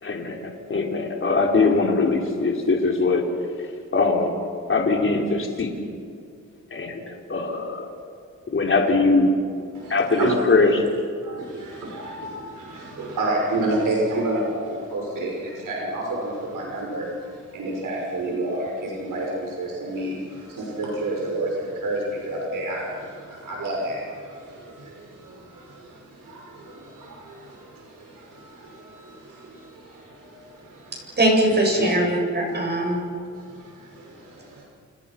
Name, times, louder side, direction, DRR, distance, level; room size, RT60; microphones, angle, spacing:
voice 1, 0.0-3.2 3.9-4.3 4.7-5.8 6.7-7.9 8.5-9.3 9.9-10.8 31.8-32.1, left 3 dB, 40° left, 1 dB, 3.9 m, -21 dB
voice 2, 9.7-10.4 11.2-31.2 32.6-32.8 33.3-34.6, right 2 dB, 80° right, -2 dB, 5.8 m, -30 dB
voice 3, 31.2-33.0, right 1 dB, 30° right, 0 dB, 7.8 m, -21 dB
29.5 x 29.0 x 6.0 m, 2.4 s
wide cardioid pair, 115°, 31 cm